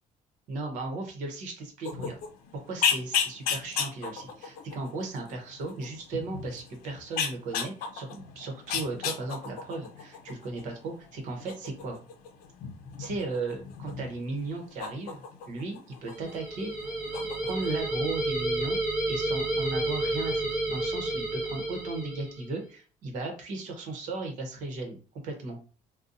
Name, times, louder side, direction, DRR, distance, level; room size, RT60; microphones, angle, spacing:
voice 1, 0.5-2.2 2.5-12.0 13.0-15.2 15.5-16.7 17.4-18.8 19.1-25.6, right 3 dB, 60° right, 3 dB, 0.9 m, -36 dB
sound 1, 1.8-16.4 16.7-17.8, left 7 dB, 80° left, 0.6 m, -35 dB
sound 2, 16.1-22.5, right 2 dB, 10° right, 0.9 m, -31 dB
2.6 x 2.3 x 3.8 m, 0.37 s
cardioid pair, 180°, 14 cm